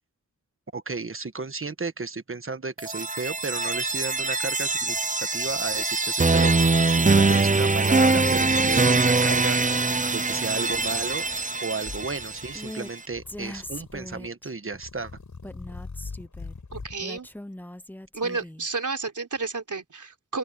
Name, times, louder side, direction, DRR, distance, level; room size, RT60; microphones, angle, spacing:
voice 1, 0.7-11.2 11.6-15.1, right 4 dB, 45° right, 1.4 m, -33 dB
sound 1, 2.8-12.7, right 3 dB, 25° right, 0.7 m, -23 dB
sound 2, 3.4-3.5 3.8-5.0 5.4-5.8 6.3-6.8 7.2-8.8 9.1-9.6 10.7-11.4 11.8-12.7 13.1-14.3 14.7-17.0, left 4 dB, 80° left, 5.6 m, -44 dB
Female speech woman speaking, 12.6-12.9 13.3-14.5 15.4-16.5 17.0-18.7, left 1 dB, 5° left, 0.9 m, -40 dB
voice 2, 16.7-17.3 18.1-20.4, right 4 dB, 90° right, 3.7 m, -31 dB
open air
wide cardioid pair, 65°, 30 cm